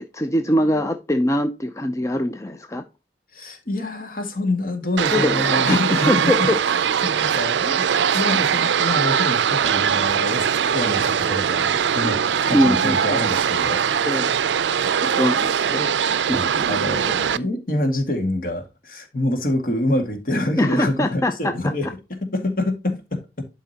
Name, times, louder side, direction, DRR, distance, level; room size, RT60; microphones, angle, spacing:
voice 1, 0.0-2.8 5.1-6.6 12.5-13.2 14.1-14.4 14.9-15.9 16.3-16.7 20.6-21.5, left 1 dB, 15° left, 0.5 m, -23 dB
voice 2, 3.3-6.5 7.0-13.8 15.0-15.1 16.3-23.5, left 1 dB, 50° left, 2.0 m, -26 dB
sound 1, 5.0-17.4, right 8 dB, 90° right, 0.5 m, -21 dB
11.5 x 5.1 x 2.8 m
head